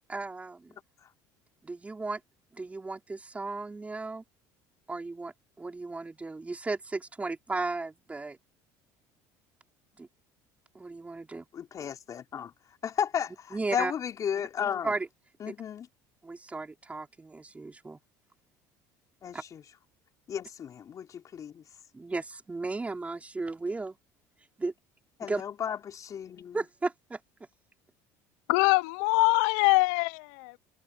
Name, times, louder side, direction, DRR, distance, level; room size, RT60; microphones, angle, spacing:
voice 1, 0.1-0.8 1.6-2.2 2.5-4.2 4.9-8.4 10.0-10.1 10.7-11.5 13.5-13.9 14.8-15.1 15.5-15.6 16.2-18.0 19.3-19.4 21.9-24.0 24.6-24.7 25.2-25.4 26.5-27.2, right 3 dB, 15° right, 5.1 m, -35 dB
voice 2, 11.5-12.5 12.8-14.9 15.4-15.9 19.2-19.6 20.3-21.6 25.2-26.6, left 8 dB, 40° left, 4.4 m, -34 dB
voice 3, 28.5-30.6, left 26 dB, 85° left, 0.6 m, -24 dB
supercardioid pair, 110°, 9 cm